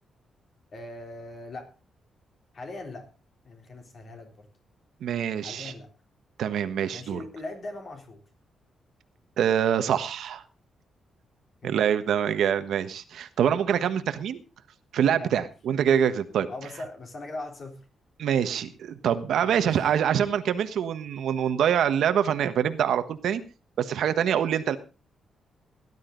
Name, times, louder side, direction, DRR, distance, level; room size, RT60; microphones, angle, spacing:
voice 1, 0.7-1.7 2.5-3.1 3.4-4.5 5.4-5.9 6.9-8.2 11.6-12.0 15.2-15.5 16.5-17.8 19.4-19.9, left 2 dB, 40° left, 4 dB, 3.7 m, -40 dB
voice 2, 5.0-5.7 6.4-7.2 9.4-10.4 11.6-14.4 14.9-16.5 18.2-23.4 23.8-24.8, right 9 dB, 75° right, 10 dB, 1.3 m, -25 dB
17.5 x 11.5 x 3.9 m, 0.32 s
wide cardioid pair, 155°, 0 cm